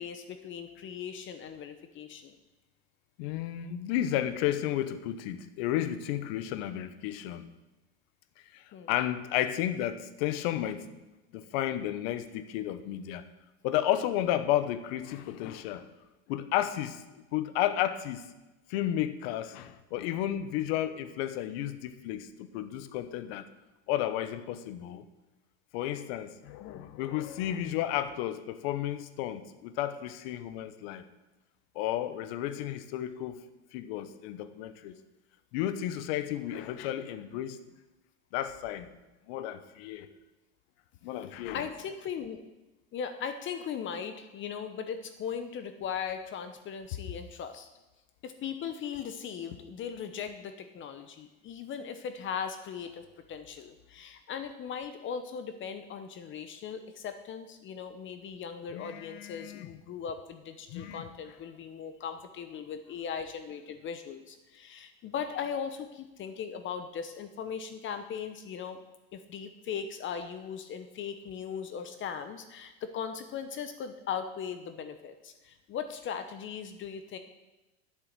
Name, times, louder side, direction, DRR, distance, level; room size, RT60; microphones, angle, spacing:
voice 1, 0.0-2.4 8.7-8.9 26.6-26.9 41.5-42.4 42.9-47.7 48.2-53.0 53.3-68.8 69.1-77.2, left 7 dB, 35° left, 9 dB, 0.9 m, -38 dB
voice 2, 3.2-7.5 8.5-11.0 11.3-13.2 13.6-15.9 16.3-17.0 17.3-18.3 18.7-23.4 23.9-25.0 25.7-31.0 31.7-33.4 33.7-34.9 35.5-37.6 38.3-38.9 39.3-40.1 41.0-41.7 58.7-59.7 60.7-61.1, left 12 dB, 65° left, 12 dB, 1.0 m, -32 dB
8.6 x 6.8 x 7.5 m, 1.0 s
supercardioid pair, 115°, 32 cm